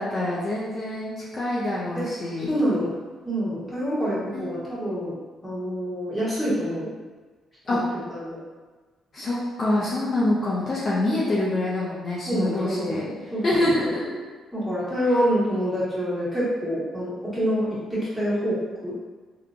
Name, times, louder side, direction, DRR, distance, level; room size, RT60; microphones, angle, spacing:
voice 1, 0.0-2.5 4.3-4.5 7.7-7.8 9.1-13.0 13.4-14.2, left 1 dB, 40° left, -7 dB, 0.6 m, -25 dB
voice 2, 2.5-2.9 3.2-5.1 5.4-6.9 7.7-7.8 8.1-8.4 12.3-13.9 14.5-18.9, equal, 5° left, -11 dB, 1.4 m, -26 dB
3.0 x 2.3 x 2.5 m, 1.4 s
cardioid pair, 90°, 0 cm